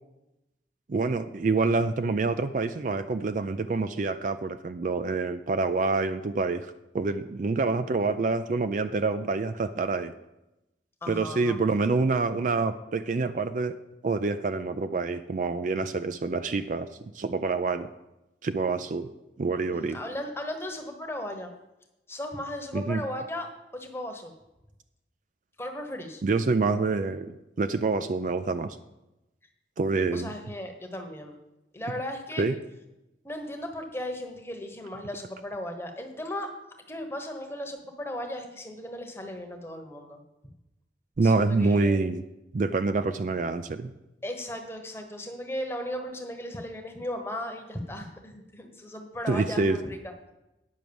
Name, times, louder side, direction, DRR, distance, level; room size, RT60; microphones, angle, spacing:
voice 1, 0.9-10.1 11.1-13.8 14.0-16.9 17.1-17.9 18.4-19.1 19.4-20.0 22.7-23.0 26.2-28.8 29.8-30.3 32.4-32.6 41.2-42.2 42.5-43.9 49.3-49.8, right 3 dB, 45° right, 11 dB, 0.4 m, -27 dB
voice 2, 11.0-11.6 19.7-21.5 22.1-24.3 25.6-26.2 30.1-31.3 31.7-32.5 33.2-36.5 36.9-40.2 41.2-42.2 44.2-50.1, left 1 dB, 15° left, 4 dB, 1.1 m, -36 dB
9.4 x 6.1 x 7.0 m, 0.96 s
head